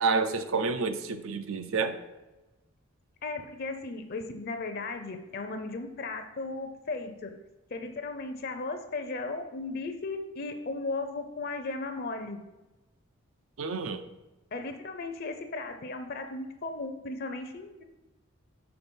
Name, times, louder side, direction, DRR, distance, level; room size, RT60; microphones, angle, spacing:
voice 1, 0.0-2.0 13.6-14.0, right 4 dB, 80° right, 10 dB, 0.5 m, -29 dB
voice 2, 3.2-7.3 7.7-12.4 14.5-17.8, left 3 dB, 45° left, 7 dB, 0.5 m, -36 dB
5.8 x 3.9 x 5.2 m, 1.1 s
head